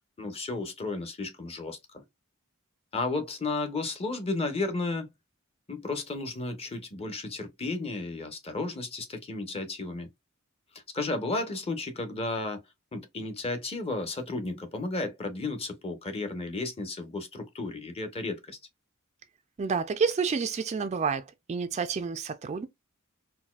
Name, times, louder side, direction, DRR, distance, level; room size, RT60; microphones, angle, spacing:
voice 1, 0.2-2.0 2.9-5.1 5.7-10.1 10.9-12.6 12.9-18.6, left 3 dB, 30° left, 0.8 m, -33 dB
voice 2, 19.6-21.2 21.5-22.7, right 5 dB, 30° right, 0.3 m, -29 dB
4.0 x 2.2 x 2.2 m
head